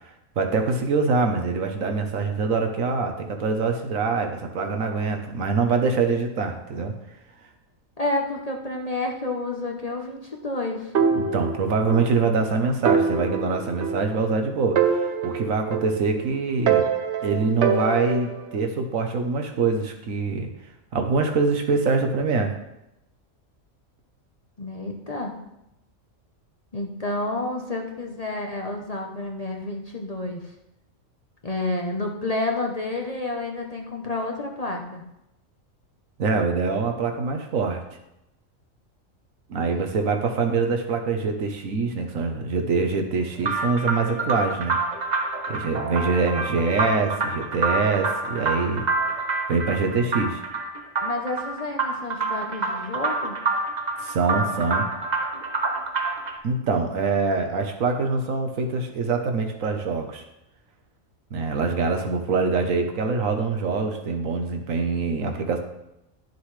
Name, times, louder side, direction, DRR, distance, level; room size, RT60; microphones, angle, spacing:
voice 1, 0.4-6.9 11.2-16.8 17.2-20.5 20.9-22.5 36.2-37.8 39.5-44.8 45.5-48.9 49.5-50.4 54.0-54.9 56.4-60.2 61.3-65.6, right 4 dB, 80° right, 4 dB, 1.4 m, -24 dB
voice 2, 8.0-10.9 24.6-25.3 26.7-30.4 31.4-35.0 39.6-39.9 51.0-53.4, left 2 dB, 35° left, 1 dB, 0.8 m, -30 dB
sound 1, 10.9-12.1 12.4-12.5 12.8-14.4 14.8-16.2 16.7-18.5, right 6 dB, 60° right, 1.0 m, -24 dB
sound 2, 43.4-56.4, right 3 dB, 35° right, 1.0 m, -27 dB
11.5 x 6.9 x 3.2 m, 0.88 s
omnidirectional pair, 1.4 m